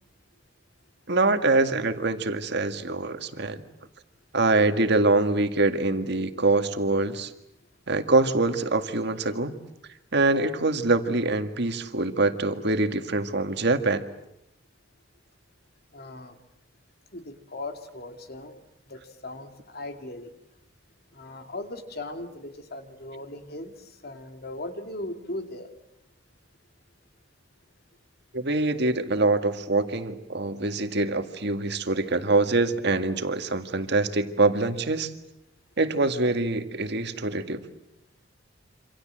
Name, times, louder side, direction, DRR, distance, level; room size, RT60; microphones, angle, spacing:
voice 1, 1.1-3.6 4.3-7.3 7.9-9.5 10.1-14.0 28.3-35.1 35.8-37.6, right 2 dB, 60° right, 8 dB, 1.9 m, -24 dB
voice 2, 15.9-16.4 17.1-18.5 18.9-20.3 21.1-25.7, left 2 dB, 50° left, 7 dB, 2.6 m, -38 dB
27.5 x 26.5 x 7.8 m, 0.82 s
head